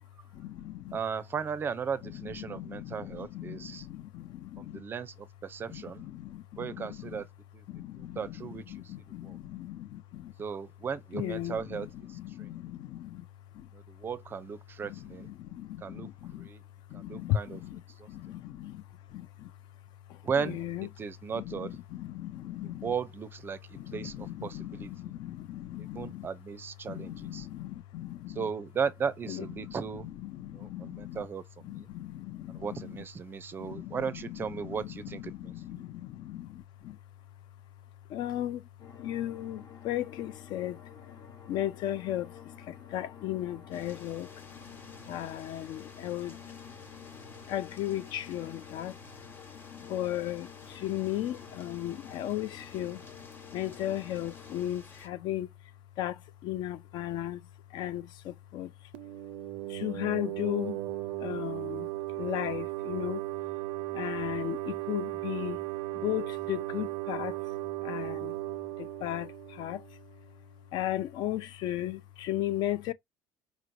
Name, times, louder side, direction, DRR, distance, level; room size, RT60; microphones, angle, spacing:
voice 1, 0.3-1.0 2.5-4.8 5.7-7.2 7.7-8.2 8.7-10.3 11.1-13.2 13.5-13.7 15.0-16.5 16.9-17.8 18.1-18.8 19.1-19.5 20.1-20.2 20.4-20.9 21.3-22.9 23.7-26.3 26.9-28.5 29.3-29.7 30.2-31.3 31.6-33.0 33.6-34.8 35.0-37.0 38.1-38.7 39.0-40.8 41.5-42.3 42.7-44.3 45.1-46.4 47.5-49.0 49.9-53.0 53.5-55.5 56.0-57.4 57.7-58.7 59.7-60.8 61.2-61.9 62.2-63.2 63.9-65.6 66.0-67.4 67.8-68.3 68.8-69.8 70.7-72.9, left 13 dB, 60° left, 0.5 m, -36 dB
voice 2, 0.9-3.9 4.6-6.0 6.6-7.3 7.5-7.6 8.0-9.4 10.4-12.5 13.7-15.3 15.8-16.6 16.9-17.6 18.0-18.1 20.2-20.6 21.0-21.8 22.6-24.9 25.8-27.5 28.3-30.1 30.5-31.9 32.5-35.9, right 6 dB, 25° right, 0.4 m, -36 dB
sound 1, 38.8-54.7, left 7 dB, 40° left, 0.9 m, -50 dB
sound 2, 43.7-55.1, left 3 dB, 25° left, 1.1 m, -53 dB
sound 3, 58.9-70.4, right 20 dB, 85° right, 0.4 m, -36 dB
5.0 x 3.1 x 2.6 m
cardioid pair, 150°, 9 cm